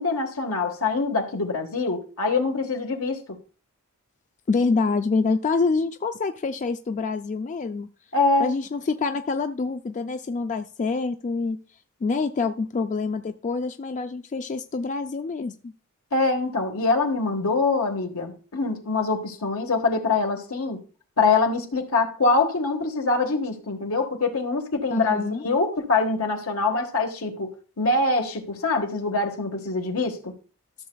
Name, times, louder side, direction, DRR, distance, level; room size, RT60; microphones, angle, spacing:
voice 1, 0.0-3.4 8.1-8.5 16.1-20.8 21.2-30.2, left 3 dB, 80° left, 1.5 m, -24 dB
voice 2, 4.5-7.9 8.4-11.6 12.0-15.7 24.9-25.4, left 4 dB, 35° left, 0.3 m, -26 dB
13.5 x 6.6 x 2.3 m
head